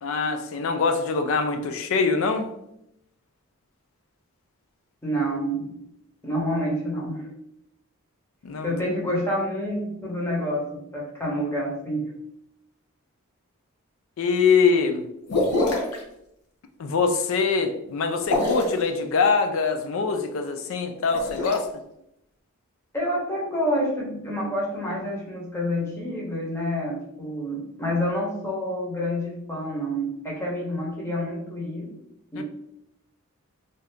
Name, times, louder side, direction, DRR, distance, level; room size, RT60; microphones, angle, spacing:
voice 1, 0.0-2.5 8.4-8.7 14.2-15.1 16.8-21.7 32.4-32.5, left 5 dB, 65° left, 6 dB, 0.3 m, -23 dB
voice 2, 5.0-5.8 6.2-7.3 8.6-12.1 22.9-31.9 32.3-32.4, equal, 10° left, -4 dB, 0.8 m, -28 dB
sound 1, 15.3-16.0 18.2-18.8 21.0-21.6, left 2 dB, 85° left, 0.7 m, -24 dB
2.7 x 2.4 x 3.4 m, 0.80 s
head